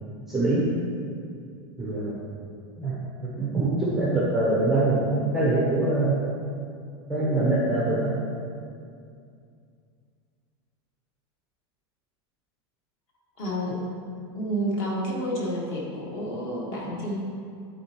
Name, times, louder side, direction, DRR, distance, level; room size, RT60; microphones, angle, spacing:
voice 1, 0.3-0.7 1.8-2.2 2.8-6.2 7.1-8.1, right 2 dB, 5° right, -7 dB, 0.8 m, -24 dB
voice 2, 13.4-13.8 14.3-17.2, equal, 35° left, -4 dB, 1.6 m, -29 dB
12.0 x 4.3 x 3.0 m, 2.4 s
supercardioid pair, 175°, 13 cm